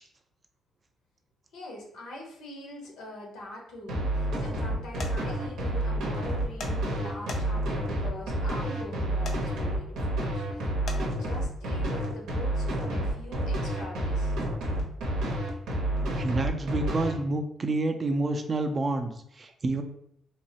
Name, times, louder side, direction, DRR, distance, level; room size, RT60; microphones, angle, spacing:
voice 1, 1.5-14.4, left 1 dB, 90° left, -1 dB, 0.8 m, -43 dB
sound 1, 3.9-17.1, right 1 dB, 85° right, 0.6 m, -29 dB
sound 2, 5.0-5.1 6.6-6.7 7.3-7.7 9.2-9.4 10.9-11.0, left 3 dB, 60° left, 0.4 m, -38 dB
voice 2, 16.1-19.8, right 2 dB, 35° right, 6 dB, 0.3 m, -29 dB
3.0 x 2.0 x 2.8 m, 0.71 s
cardioid pair, 90°, 0 cm